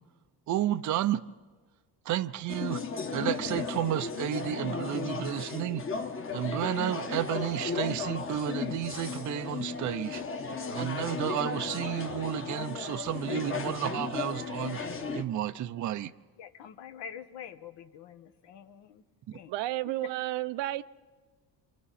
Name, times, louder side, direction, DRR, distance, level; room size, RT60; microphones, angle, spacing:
voice 1, 0.5-1.2 2.1-2.8 3.1-5.8 6.3-10.2 10.7-14.8 15.1-16.1 19.3-19.4, right 11 dB, 45° right, 0.6 m, -31 dB
sound 1, 2.5-15.2, left 5 dB, 30° left, 1.2 m, -35 dB
voice 2, 16.4-19.0 19.3-19.5, left 8 dB, 70° left, 1.2 m, -46 dB
voice 3, 19.5-20.8, right 16 dB, 80° right, 0.7 m, -31 dB
29.0 x 24.5 x 4.2 m
cardioid pair, 135°, 43 cm